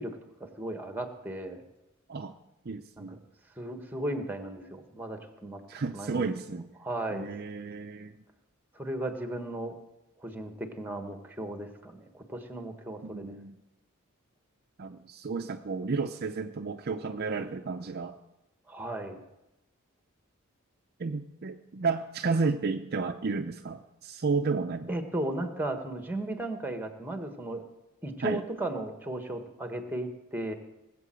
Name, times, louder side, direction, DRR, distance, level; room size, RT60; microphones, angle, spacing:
voice 1, 0.0-1.6 3.0-3.2 3.6-6.3 6.8-7.3 8.7-9.8 10.2-13.4 18.7-19.2 24.9-27.6 28.0-30.5, right 1 dB, 10° right, 6 dB, 1.4 m, -36 dB
voice 2, 2.7-3.2 5.7-6.7 7.1-8.1 13.0-13.6 14.8-18.2 21.0-24.9 28.2-28.4, right 4 dB, 45° right, 7 dB, 0.6 m, -32 dB
19.0 x 7.6 x 7.6 m, 0.96 s
head